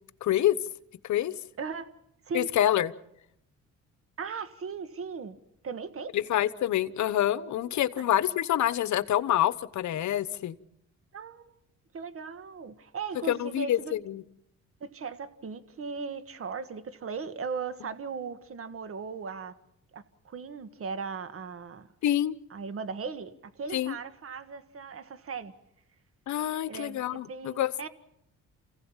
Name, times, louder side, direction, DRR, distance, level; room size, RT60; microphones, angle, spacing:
voice 1, 0.2-0.6 1.0-1.3 2.3-2.9 6.1-10.6 13.3-14.2 22.0-22.4 23.7-24.0 26.3-27.9, left 12 dB, 70° left, 1.0 m, -27 dB
voice 2, 1.6-1.9 2.3-2.5 4.2-5.4 5.6-6.2 7.7-8.0 11.1-11.6 11.9-14.0 14.8-19.5 19.9-21.9 22.5-25.5 26.7-27.9, right 5 dB, 45° right, 1.7 m, -38 dB
29.0 x 16.5 x 7.3 m
cardioid pair, 90°, 30 cm